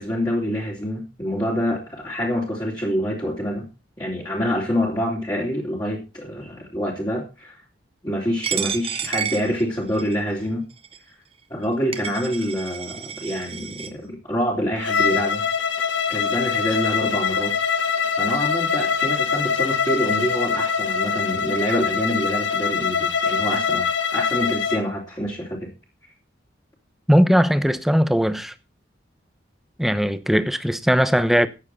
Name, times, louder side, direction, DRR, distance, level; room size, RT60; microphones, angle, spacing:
voice 1, 0.0-3.7 4.0-7.6 8.0-10.6 11.5-15.4 16.1-17.5 18.1-25.7, equal, 20° left, 3.2 m, -26 dB
Coin (dropping), 8.4-10.2 10.8-11.0 11.6-11.7 11.9-13.9, right 8 dB, 30° right, 1.2 m, -30 dB
Bowed string instrument, 14.8-24.8, left 6 dB, 85° left, 1.3 m, -23 dB
voice 2, 27.1-28.5 29.8-31.5, equal, ahead, 0.9 m, -19 dB
14.5 x 9.7 x 4.1 m
head